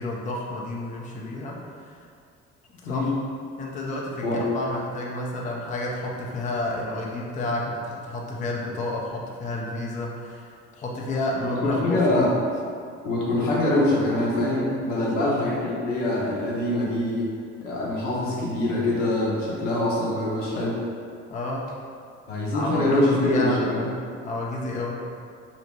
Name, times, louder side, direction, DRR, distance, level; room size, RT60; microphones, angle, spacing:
voice 1, 0.0-2.0 2.8-3.1 3.6-12.3 14.9-15.4 21.3-21.7 22.5-25.1, left 2 dB, 20° left, -2 dB, 0.4 m, -30 dB
voice 2, 2.8-3.2 4.2-4.4 11.4-12.3 13.0-17.3 17.6-20.8 22.3-23.8, left 1 dB, 85° left, -6 dB, 0.6 m, -24 dB
2.9 x 2.0 x 2.7 m, 2.3 s
figure-of-eight pair, 55°, 36 cm